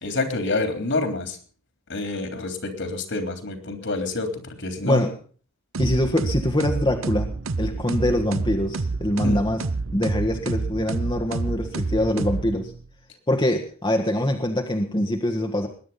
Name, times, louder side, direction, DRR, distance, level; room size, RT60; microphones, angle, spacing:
voice 1, 0.0-1.4 1.9-5.0 9.2-9.4, left 2 dB, 60° left, 6 dB, 3.4 m, -27 dB
sound 1, 5.7-12.9, right 3 dB, 70° right, 0.8 m, -28 dB
voice 2, 5.8-7.3 7.6-9.6 9.9-12.7 13.3-15.7, left 1 dB, 25° left, 3 dB, 1.4 m, -24 dB
20.5 x 10.0 x 5.6 m, 0.43 s
head